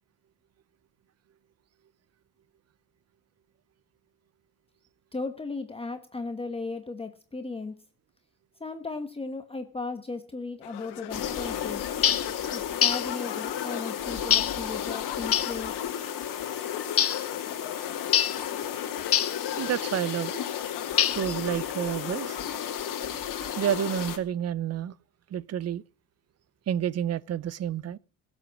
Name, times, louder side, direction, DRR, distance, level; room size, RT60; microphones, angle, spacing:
voice 1, 5.1-7.7 8.6-11.9 12.5-15.8, left 3 dB, 15° left, 1.2 m, -36 dB
sound 1, 10.6-23.4, left 14 dB, 85° left, 1.7 m, -42 dB
sound 2, 11.1-24.2, left 9 dB, 55° left, 2.5 m, -33 dB
Distant Swords, 12.0-12.3 12.8-13.1 14.3-14.6 15.3-15.6 17.0-17.3 18.1-18.4 19.1-19.4 21.0-21.4, left 9 dB, 35° left, 0.9 m, -24 dB
voice 2, 19.6-20.4 21.1-22.4 23.6-24.9 25.3-25.8 26.7-28.0, right 10 dB, 40° right, 0.7 m, -29 dB
16.5 x 8.1 x 7.3 m
cardioid pair, 140°, 39 cm